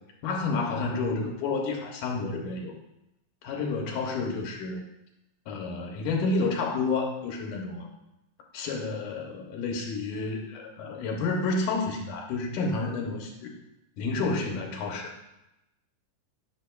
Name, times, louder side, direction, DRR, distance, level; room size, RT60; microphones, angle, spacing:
voice 1, 0.2-2.7 3.4-4.8 5.5-7.9 8.5-13.5 14.0-15.1, left 3 dB, 80° left, 1 dB, 2.2 m, -30 dB
8.8 x 6.3 x 2.2 m, 0.90 s
omnidirectional pair, 3.7 m